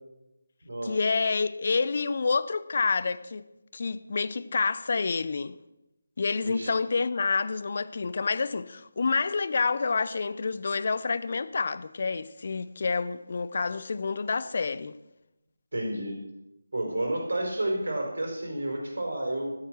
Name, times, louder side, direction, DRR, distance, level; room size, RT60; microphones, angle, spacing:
voice 1, 0.8-3.4 3.7-5.5 6.2-14.9, left 4 dB, 45° left, 0.7 m, -28 dB
voice 2, 15.7-16.2 16.7-19.5, right 1 dB, 70° right, 4.9 m, -30 dB
12.5 x 11.5 x 6.2 m
figure-of-eight pair, 160°, 0 cm